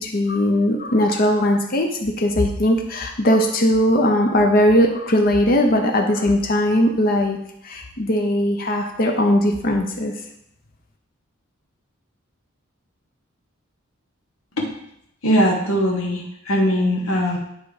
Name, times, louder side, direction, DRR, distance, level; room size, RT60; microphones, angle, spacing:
voice 1, 0.0-7.4 7.6-10.1, left 1 dB, 45° left, 2 dB, 0.7 m, -19 dB
voice 2, 15.2-17.4, equal, 85° left, 0 dB, 1.3 m, -20 dB
9.2 x 3.6 x 4.9 m, 0.77 s
head